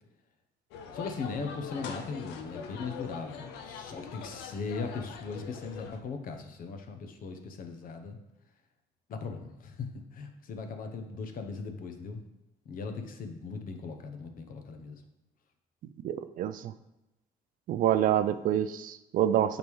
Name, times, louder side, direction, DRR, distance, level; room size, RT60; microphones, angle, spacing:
sound 1, 0.7-6.0, left 6 dB, 85° left, 0.6 m, -43 dB
voice 1, 0.9-8.2 9.1-12.2 12.6-15.0, left 4 dB, 55° left, 6 dB, 0.8 m, -39 dB
voice 2, 16.0-16.7 17.7-19.6, right 11 dB, 55° right, 12 dB, 0.4 m, -27 dB
6.9 x 5.2 x 3.1 m, 0.94 s
cardioid pair, 110°, 17 cm